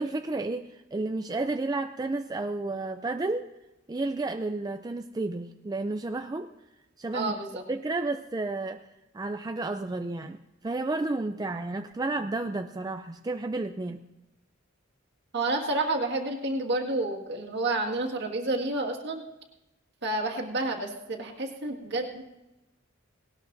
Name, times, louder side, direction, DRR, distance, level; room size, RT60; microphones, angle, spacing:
voice 1, 0.0-3.5 3.9-6.5 7.0-7.4 7.7-8.8 9.1-10.4 10.6-14.0, right 2 dB, 20° right, 7 dB, 0.4 m, -31 dB
voice 2, 7.1-7.6 15.3-19.2 20.0-22.2, right 2 dB, 60° right, 2 dB, 1.9 m, -30 dB
18.5 x 18.0 x 2.6 m, 0.98 s
head